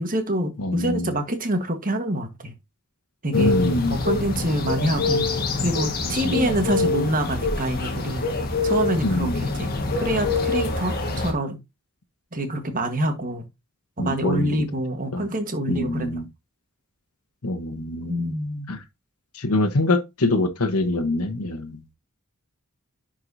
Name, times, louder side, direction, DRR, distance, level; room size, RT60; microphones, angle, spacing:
voice 1, 0.0-2.5 3.2-3.6 3.9-5.3 5.6-8.3 8.6-9.7 10.0-11.6 12.3-13.4 14.0-16.2 18.1-18.7, right 1 dB, 40° right, 1.5 m, -26 dB
voice 2, 0.6-1.1 3.3-4.0 6.2-6.5 9.0-9.5 14.0-14.5 15.1-15.3 15.7-16.2 17.4-18.3 18.7-18.8 19.3-21.8, left 2 dB, 90° left, 1.2 m, -24 dB
sound 1, 3.3-11.3, left 3 dB, 45° left, 1.6 m, -25 dB
10.5 x 4.8 x 2.7 m
head